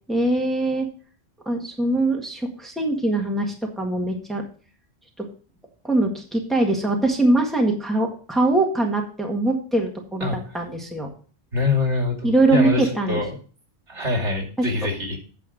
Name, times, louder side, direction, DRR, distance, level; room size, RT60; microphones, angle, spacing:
voice 1, 0.1-0.9 1.5-4.4 5.2-5.3 5.8-11.1 12.2-13.2, right 2 dB, ahead, 1 dB, 1.6 m, -22 dB
voice 2, 11.5-13.4 13.9-15.2, left 3 dB, 80° right, 1 dB, 3.3 m, -24 dB
9.1 x 7.0 x 5.0 m, 0.40 s
omnidirectional pair, 1.2 m